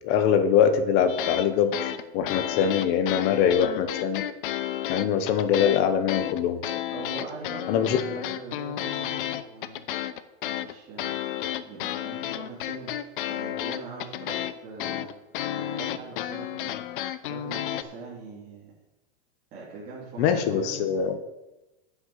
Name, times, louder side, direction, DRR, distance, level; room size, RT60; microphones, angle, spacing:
voice 1, 0.0-4.2 4.9-6.6 7.7-8.0 20.2-21.2, left 8 dB, 35° left, 10 dB, 1.0 m, -23 dB
sound 1, 1.1-1.5 1.7-5.8 6.1-17.8, left 12 dB, 60° left, 0.8 m, -32 dB
voice 2, 6.9-9.8 10.4-11.2 11.5-14.4 14.6-15.1 15.4-18.7 19.5-20.9, right 4 dB, 30° right, -9 dB, 3.5 m, -42 dB
9.5 x 7.2 x 6.5 m, 1.0 s
supercardioid pair, 165°, 31 cm